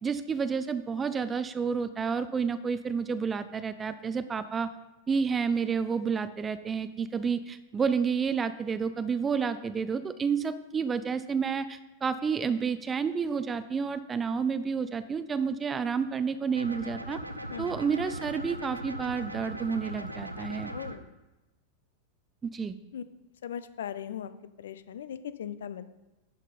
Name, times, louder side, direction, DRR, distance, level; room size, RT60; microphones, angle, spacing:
voice 1, 0.0-4.7 5.1-17.2 17.6-20.7 22.4-22.8, right 6 dB, 20° right, 12 dB, 0.5 m, -30 dB
sound 1, 16.6-21.0, right 1 dB, 85° right, 0.7 m, -39 dB
voice 2, 20.7-21.1 22.9-23.0 23.4-24.3 24.6-25.9, left 9 dB, 60° left, 13 dB, 0.5 m, -38 dB
10.5 x 5.6 x 5.2 m, 1.1 s
figure-of-eight pair, 90°, 0 cm